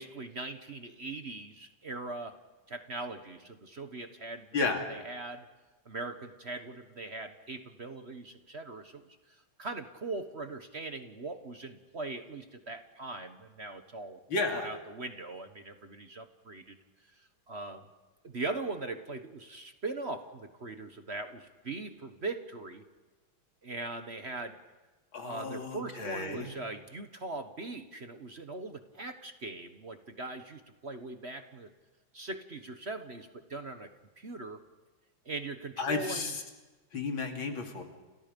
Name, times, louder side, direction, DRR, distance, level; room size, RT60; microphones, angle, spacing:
voice 1, 0.0-2.4 2.7-5.5 5.8-14.2 14.5-16.8 17.1-17.8 18.2-22.8 23.6-24.6 25.2-31.7 32.1-33.9 34.2-34.6 35.2-36.4, right 3 dB, 35° right, 8 dB, 1.4 m, -40 dB
voice 2, 4.5-4.8 14.3-14.7 25.1-26.5 35.8-36.4 36.9-37.8, left 3 dB, 85° left, 3 dB, 3.6 m, -32 dB
29.5 x 29.5 x 5.3 m, 1.2 s
omnidirectional pair, 2.1 m